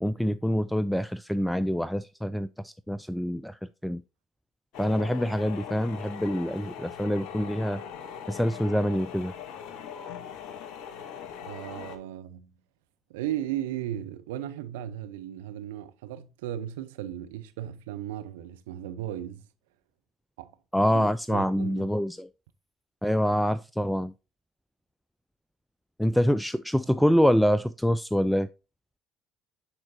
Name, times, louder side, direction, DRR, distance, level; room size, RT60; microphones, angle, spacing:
voice 1, 0.0-4.0 4.8-7.8 8.3-9.3 20.7-22.3 23.0-24.1 26.0-28.5, equal, ahead, 0.3 m, -26 dB
sound 1, 4.7-12.0, left 8 dB, 60° left, 1.1 m, -41 dB
voice 2, 11.4-12.5 13.1-19.4 20.4-20.5 20.9-21.9, right 12 dB, 75° right, 0.6 m, -36 dB
9.8 x 4.4 x 2.6 m
hypercardioid pair, 60°, 0 cm